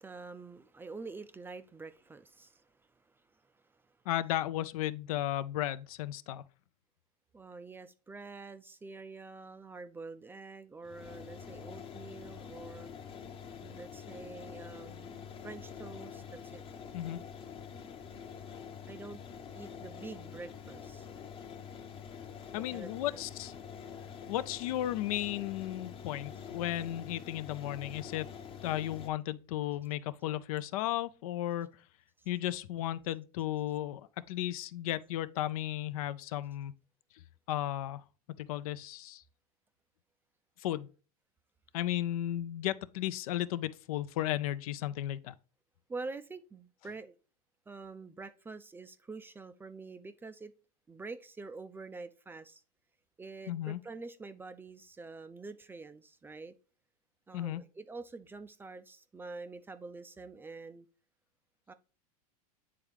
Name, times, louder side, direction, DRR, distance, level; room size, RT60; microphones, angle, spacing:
voice 1, 0.0-4.0 7.3-12.9 13.6-16.6 18.9-19.2 19.5-21.1 22.5-23.2 32.2-32.3 45.9-47.2 47.7-50.5 50.9-52.6 53.2-56.5 57.3-60.9 61.7-61.8, right 3 dB, 10° right, 0.4 m, -46 dB
voice 2, 4.1-6.4 16.9-17.2 22.5-23.6 24.2-28.3 28.6-31.7 32.3-34.0 34.3-36.7 37.1-37.2 37.5-38.0 38.4-39.2 40.6-40.9 41.7-45.3 53.5-53.8 57.3-57.6, left 13 dB, 70° left, 0.5 m, -34 dB
sound 1, 10.8-29.1, left 7 dB, 30° left, 0.7 m, -46 dB
8.6 x 3.6 x 3.3 m
hypercardioid pair, 115°, 19 cm